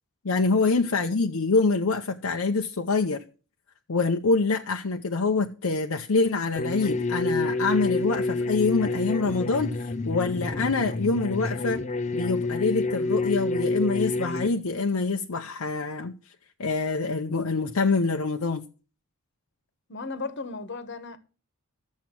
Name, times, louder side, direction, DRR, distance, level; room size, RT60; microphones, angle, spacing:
voice 1, 0.2-3.2 3.9-11.8 12.1-16.1 16.6-18.6, left 3 dB, 70° left, 0.7 m, -25 dB
sound 1, 6.6-14.5, left 2 dB, 30° left, 0.6 m, -28 dB
voice 2, 19.9-21.2, left 3 dB, 55° left, 1.2 m, -35 dB
12.5 x 7.4 x 6.0 m
head